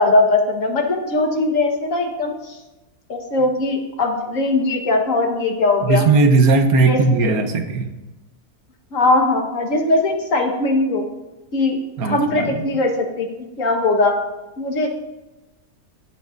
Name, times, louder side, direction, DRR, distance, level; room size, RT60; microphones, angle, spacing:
voice 1, 0.0-2.6 3.1-6.0 6.9-7.3 8.9-11.0 11.5-11.8 12.0-14.2 14.6-14.9, left 2 dB, 60° left, 2 dB, 1.7 m, -20 dB
voice 2, 5.8-7.9 12.0-12.7, right 3 dB, 75° right, 7 dB, 1.4 m, -17 dB
16.0 x 8.2 x 2.6 m, 1.1 s
omnidirectional pair, 1.6 m